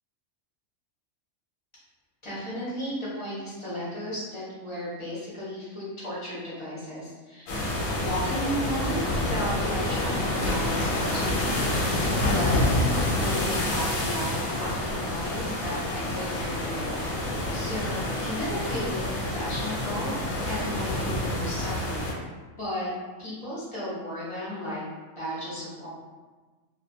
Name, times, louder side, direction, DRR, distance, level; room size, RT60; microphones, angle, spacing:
voice 1, 2.2-7.5 7.9-11.9 12.3-20.1 20.4-22.2 22.6-22.9 23.2-24.8 25.2-25.9, equal, 30° left, -9 dB, 0.7 m, -35 dB
sound 1, 7.5-22.1, left 1 dB, 90° left, 1.0 m, -28 dB
2.6 x 2.2 x 2.5 m, 1.3 s
omnidirectional pair, 1.4 m